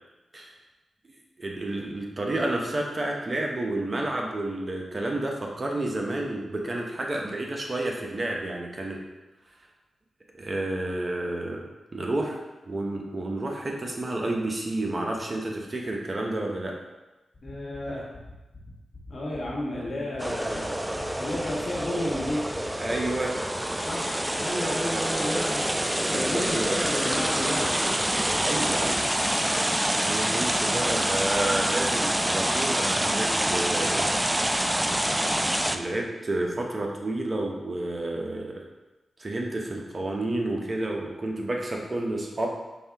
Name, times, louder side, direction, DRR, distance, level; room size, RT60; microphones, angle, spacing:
voice 1, 1.4-9.0 10.3-11.6 11.9-12.4 12.7-16.7 22.8-23.3 26.1-26.7 28.4-29.0 30.0-34.1 35.7-38.6 39.2-42.5, right 2 dB, 40° right, 0 dB, 0.8 m, -30 dB
sound 1, 17.3-23.3, left 3 dB, 45° left, 1.2 m, -44 dB
voice 2, 17.4-18.0 19.1-20.6 21.2-22.4 23.8-24.1 24.3-25.6 26.1-28.0 28.6-28.9 29.2-29.7, left 1 dB, 60° left, -4 dB, 1.5 m, -32 dB
sound 2, 20.2-35.8, right 1 dB, 10° right, 0.3 m, -26 dB
5.3 x 2.7 x 3.5 m, 1.1 s
cardioid pair, 50°, 0 cm